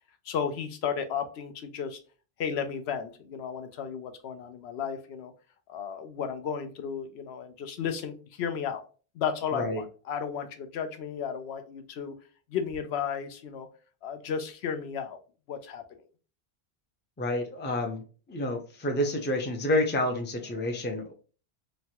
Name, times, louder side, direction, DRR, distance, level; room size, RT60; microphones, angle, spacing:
voice 1, 0.2-2.0 2.4-5.3 5.7-8.8 9.1-12.1 12.5-13.7 14.0-15.2 15.5-15.8, left 7 dB, 85° left, 8 dB, 0.9 m, -33 dB
voice 2, 17.2-18.0 18.3-21.2, left 1 dB, 15° left, 4 dB, 0.3 m, -29 dB
3.0 x 2.3 x 2.7 m, 0.37 s
omnidirectional pair, 1.0 m